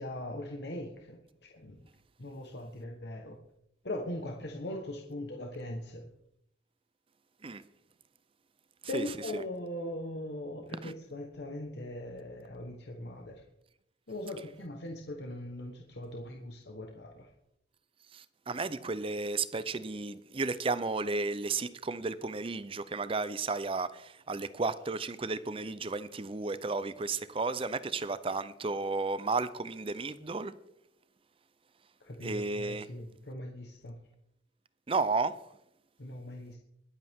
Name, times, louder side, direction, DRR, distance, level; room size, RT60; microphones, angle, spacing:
voice 1, 0.0-1.8 2.2-3.4 3.8-6.1 8.9-13.4 14.1-17.3 32.0-33.9 36.0-36.6, left 1 dB, 60° left, 1.2 m, -40 dB
voice 2, 18.1-30.6 32.2-32.9 34.9-35.3, right 3 dB, 30° right, 0.6 m, -33 dB
21.5 x 8.2 x 3.6 m
head